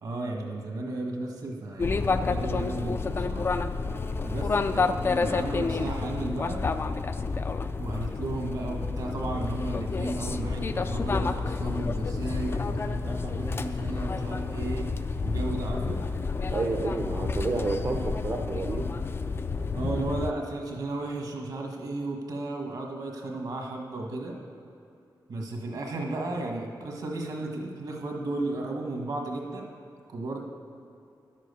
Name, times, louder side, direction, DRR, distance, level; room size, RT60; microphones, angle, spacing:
voice 1, 0.0-3.5 4.2-4.9 5.1-6.6 7.8-14.9 15.2-16.0 19.7-24.4 25.3-29.7 30.1-30.4, right 2 dB, 60° right, 1 dB, 1.5 m, -34 dB
sound 1, 1.8-20.3, left 4 dB, 30° left, 0.3 m, -29 dB
voice 2, 16.5-18.9, right 3 dB, 35° right, 0 dB, 0.7 m, -30 dB
11.0 x 7.6 x 6.8 m, 2.5 s
wide cardioid pair, 170°, 8 cm